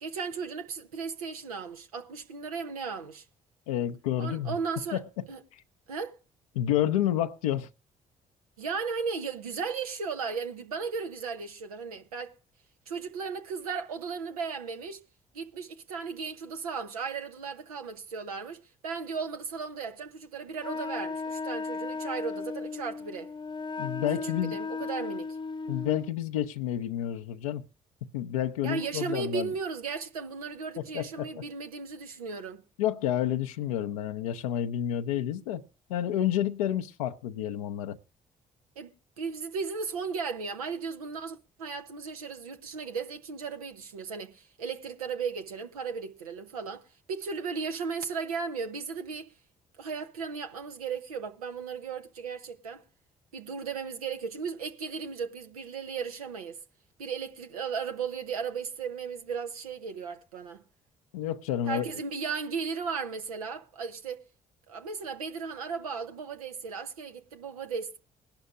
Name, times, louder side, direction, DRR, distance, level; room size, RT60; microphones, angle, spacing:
voice 1, 0.0-3.2 4.2-5.0 5.3-5.4 5.9-6.2 8.6-12.3 12.9-15.0 15.3-23.3 24.2-25.4 28.6-32.6 38.8-49.3 49.8-52.8 53.3-56.6 57.0-60.6 61.7-64.2 64.7-68.0, right 5 dB, 85° right, 0.8 m, -36 dB
voice 2, 3.7-4.6 4.9-5.2 6.5-7.7 23.8-24.6 25.7-27.6 28.1-29.5 30.8-31.3 32.8-35.6 35.9-38.0 61.1-61.9, left 11 dB, 80° left, 0.6 m, -29 dB
Wind instrument woodwind instrument, 20.6-26.1, left 4 dB, 25° left, 0.7 m, -36 dB
21.0 x 11.5 x 2.4 m
hypercardioid pair, 45°, 18 cm